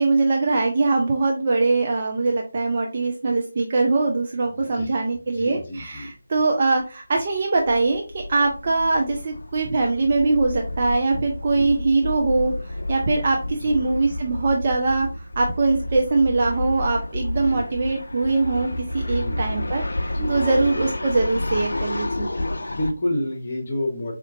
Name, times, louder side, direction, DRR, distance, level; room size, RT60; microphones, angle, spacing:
voice 1, 0.0-22.3, right 3 dB, 40° right, 0 dB, 0.5 m, -22 dB
voice 2, 4.6-4.9 5.3-6.1 11.5-11.7 13.6-13.8 17.4-17.6 19.1-19.4 20.1-20.4 22.7-24.1, left 1 dB, 40° left, 2 dB, 1.1 m, -29 dB
sound 1, 6.4-6.5 6.8-6.9 7.2-22.9, left 1 dB, 75° left, 0.4 m, -30 dB
4.3 x 2.5 x 2.7 m, 0.37 s
figure-of-eight pair, 160°, 0 cm